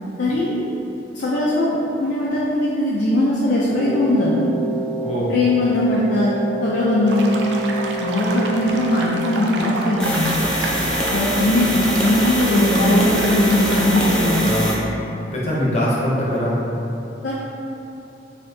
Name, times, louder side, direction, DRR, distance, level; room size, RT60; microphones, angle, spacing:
voice 1, 0.2-0.6 1.1-4.5 5.3-6.3 6.6-7.3 8.0-10.4 11.1-14.5 17.2-17.3, left 1 dB, 80° left, -6 dB, 0.5 m, -19 dB
Wind instrument woodwind instrument, 3.7-9.4, right 2 dB, 25° right, 1.1 m, -28 dB
voice 2, 5.0-5.3 14.4-14.8 15.3-16.5, equal, 40° left, -6 dB, 0.8 m, -22 dB
sound 1, 7.1-14.5, right 3 dB, 75° right, 0.4 m, -30 dB
sound 2, 10.0-14.8, equal, 5° left, 0.4 m, -23 dB
4.2 x 2.7 x 2.7 m, 2.9 s
head